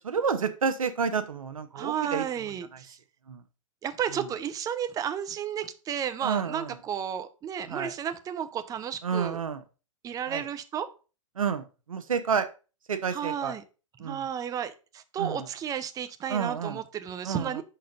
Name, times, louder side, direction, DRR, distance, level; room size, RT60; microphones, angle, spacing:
voice 1, 0.0-2.2 3.3-3.4 6.2-6.8 7.7-7.9 9.0-9.6 10.3-10.5 11.4-12.5 12.9-13.5 14.0-14.3 15.2-15.5 16.3-16.8 17.2-17.6, right 6 dB, 90° right, 1.0 m, -30 dB
voice 2, 1.7-3.0 3.8-9.4 10.0-10.9 13.1-13.6 14.0-17.6, right 9 dB, 20° right, 0.6 m, -33 dB
6.3 x 4.5 x 5.3 m
hypercardioid pair, 115°, 17 cm